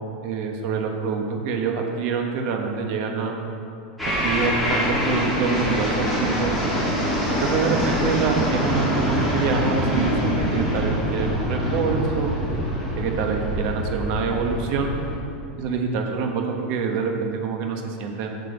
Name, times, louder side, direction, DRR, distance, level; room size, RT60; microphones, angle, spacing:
voice 1, 0.2-3.4 4.2-6.5 7.4-12.4 13.0-15.0 15.6-18.3, right 5 dB, 50° right, 3 dB, 1.2 m, -26 dB
sound 1, 4.0-15.2, equal, ahead, 2.5 m, -24 dB
7.8 x 7.2 x 7.0 m, 2.6 s
supercardioid pair, 155°, 6 cm